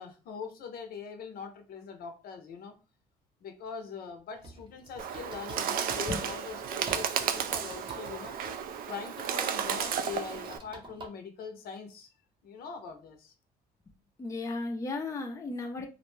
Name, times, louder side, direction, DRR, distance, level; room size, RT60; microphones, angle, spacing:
voice 1, 0.0-2.7 3.4-8.4 8.9-12.1 12.4-13.3, left 6 dB, 65° left, 0.6 m, -42 dB
sound 1, 4.3-11.1, right 3 dB, 30° right, 0.7 m, -49 dB
Bird, 5.0-10.6, right 8 dB, 60° right, 0.4 m, -33 dB
voice 2, 14.2-15.9, left 3 dB, 20° left, 0.5 m, -34 dB
2.5 x 2.1 x 3.1 m
cardioid pair, 110°, 17 cm